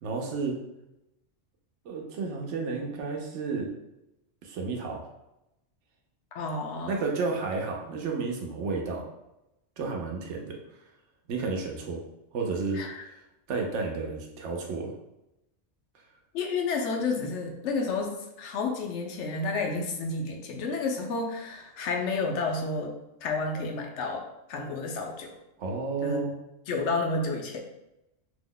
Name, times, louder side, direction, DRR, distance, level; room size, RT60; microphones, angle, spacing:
voice 1, 0.0-0.6 1.8-3.7 4.4-5.0 6.8-9.0 9.8-10.6 11.3-12.0 12.3-12.8 13.5-14.9 25.6-26.4, right 4 dB, 85° right, 1 dB, 0.9 m, -31 dB
voice 2, 6.3-7.0 12.7-13.0 16.3-23.0 23.2-25.4 26.0-26.2 26.7-27.6, left 3 dB, 85° left, 2 dB, 0.9 m, -31 dB
2.8 x 2.1 x 3.7 m, 0.90 s
omnidirectional pair, 1.2 m